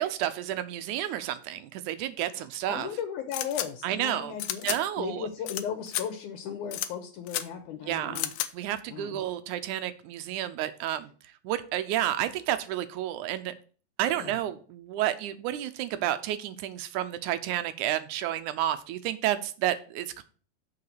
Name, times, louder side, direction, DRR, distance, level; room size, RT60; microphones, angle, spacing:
voice 1, 0.0-2.9 3.8-4.4 4.6-5.3 7.8-8.2 8.5-11.1 11.4-13.5 14.0-20.2, right 12 dB, 80° right, 11 dB, 2.0 m, -31 dB
voice 2, 2.4-8.3 8.9-9.2 14.2-14.4, left 8 dB, 70° left, 6 dB, 2.4 m, -36 dB
sound 1, 3.3-3.7 4.4-4.8 5.5-5.6 5.9-6.0 6.7-6.9 7.3-7.4 8.2-8.5, left 13 dB, 85° left, 2.3 m, -31 dB
6.8 x 4.8 x 6.7 m, 0.40 s
omnidirectional pair, 3.8 m